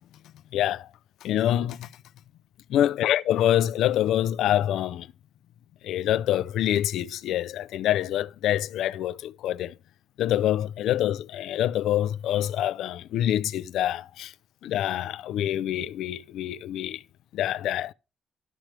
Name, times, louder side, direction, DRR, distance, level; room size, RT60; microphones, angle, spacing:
voice 1, 0.5-0.9 1.2-1.9 2.7-5.1 5.8-9.7 10.2-14.3 14.6-17.0 17.3-17.9, left 12 dB, 80° left, 0.4 m, -26 dB
12.0 x 5.9 x 3.2 m
cardioid pair, 90°, 0 cm